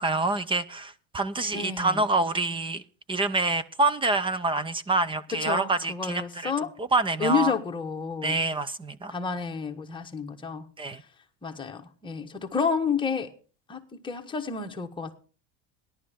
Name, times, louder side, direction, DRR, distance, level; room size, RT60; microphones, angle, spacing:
voice 1, 0.0-2.8 3.1-6.5 6.8-7.5 8.2-9.1 10.8-11.0, right 3 dB, 15° right, 0.6 m, -26 dB
voice 2, 1.5-2.1 5.3-6.7 7.2-8.4 9.1-10.6 11.4-13.3 13.7-15.1, left 5 dB, 15° left, 1.5 m, -30 dB
16.5 x 11.5 x 3.6 m
cardioid pair, 145°, 33 cm